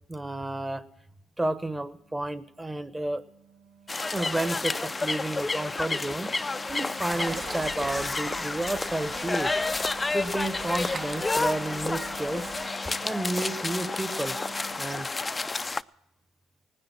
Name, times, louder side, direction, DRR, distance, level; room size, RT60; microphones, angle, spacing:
voice 1, 0.1-0.8 1.4-3.2 4.1-6.3 6.7-9.6 10.1-12.5 13.0-14.4 14.8-15.1, right 2 dB, 15° right, 13 dB, 1.1 m, -31 dB
Wind instrument woodwind instrument, 1.9-14.9, right 2 dB, 65° right, 4.3 m, -47 dB
sound 1, 3.9-15.8, left 3 dB, 25° left, 0.4 m, -30 dB
sound 2, 7.1-12.7, right 5 dB, 45° right, 0.9 m, -42 dB
18.5 x 10.0 x 6.0 m, 0.85 s
supercardioid pair, 75°, 0 cm